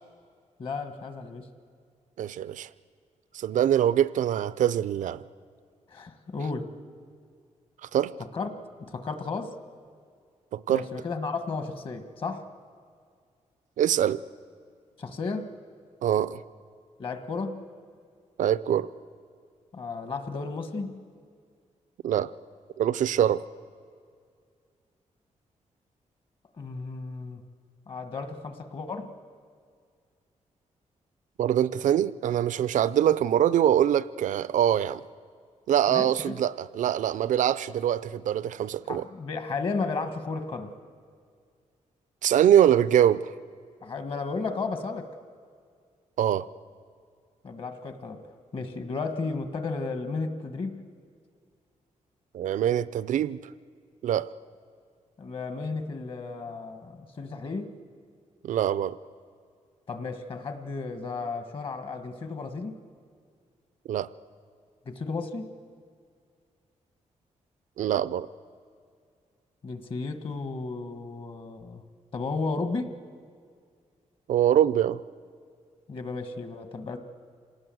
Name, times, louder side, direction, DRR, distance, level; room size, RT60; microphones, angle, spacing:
voice 1, 0.6-1.5 5.9-6.7 8.3-8.5 8.8-9.5 10.7-12.4 15.0-15.5 17.0-17.6 19.7-21.0 26.6-27.4 27.9-29.1 35.9-36.4 38.9-40.7 43.8-45.1 47.4-48.2 48.5-50.8 55.2-57.7 59.9-62.8 64.8-65.5 69.6-71.8 72.1-72.9 75.9-77.0, left 4 dB, 45° left, 1.4 m, -33 dB
voice 2, 2.2-2.7 3.3-5.2 7.9-8.1 10.5-10.8 13.8-14.2 16.0-16.4 18.4-18.9 22.0-22.3 22.8-23.4 31.4-35.0 35.7-39.1 42.2-43.3 46.2-46.5 52.3-53.4 54.0-54.3 58.4-59.0 63.9-64.1 67.8-68.3 74.3-75.0, right 10 dB, 85° right, 0.5 m, -23 dB
26.5 x 18.5 x 7.7 m
wide cardioid pair, 165°, 13 cm